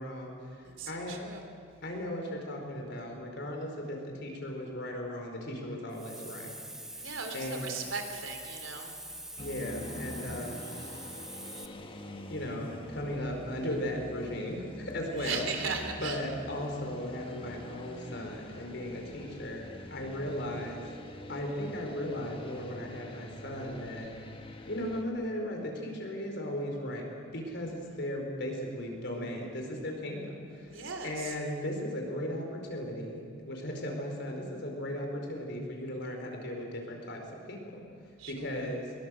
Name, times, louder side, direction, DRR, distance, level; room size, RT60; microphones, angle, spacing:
voice 1, 0.0-1.2 1.8-6.6 7.3-7.8 9.4-10.7 12.3-20.8 21.3-24.1 24.7-27.0 27.3-37.8 38.3-38.9, left 1 dB, 55° left, 2 dB, 4.8 m, -37 dB
voice 2, 0.7-1.4 6.9-9.0 15.1-16.2 30.7-31.3 38.2-38.6, right 5 dB, 75° right, 5 dB, 3.4 m, -38 dB
Hiss, 5.9-11.7, right 1 dB, 5° right, 0.9 m, -44 dB
sound 1, 9.4-25.0, left 1 dB, 25° left, 1.7 m, -45 dB
23.5 x 22.0 x 7.8 m, 2.4 s
head